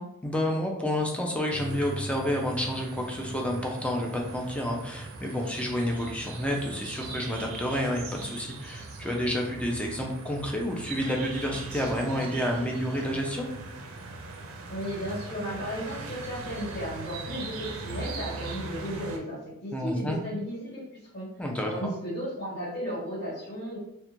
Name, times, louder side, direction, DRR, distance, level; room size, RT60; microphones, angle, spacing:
voice 1, 0.2-13.5 19.7-20.2 21.4-21.9, equal, 5° left, 0 dB, 0.4 m, -29 dB
sound 1, 1.5-19.2, right 3 dB, 85° right, 0.4 m, -40 dB
voice 2, 14.7-20.8 21.1-21.3 21.7-23.8, equal, 50° left, -8 dB, 1.3 m, -35 dB
2.4 x 2.1 x 2.9 m, 0.79 s
head